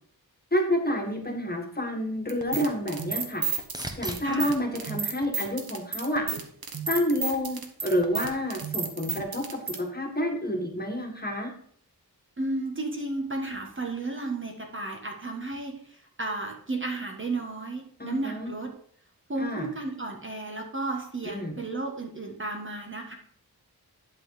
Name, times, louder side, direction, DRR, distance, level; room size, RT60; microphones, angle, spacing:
voice 1, 0.5-3.4 4.0-6.2 6.9-9.4 9.8-11.5 18.0-18.5 19.4-19.7 21.3-21.6, equal, 25° left, 2 dB, 1.8 m, -29 dB
voice 2, 1.1-1.5 4.2-4.5 12.4-18.7 19.3-23.2, right 2 dB, 30° right, 2 dB, 1.5 m, -33 dB
sound 1, 2.3-9.8, right 5 dB, 65° right, 1.2 m, -32 dB
sound 2, 2.7-6.2 6.7-7.3 15.2-15.3, right 1 dB, 10° right, 1.1 m, -44 dB
11.0 x 4.1 x 4.9 m, 0.62 s
wide cardioid pair, 75°, 38 cm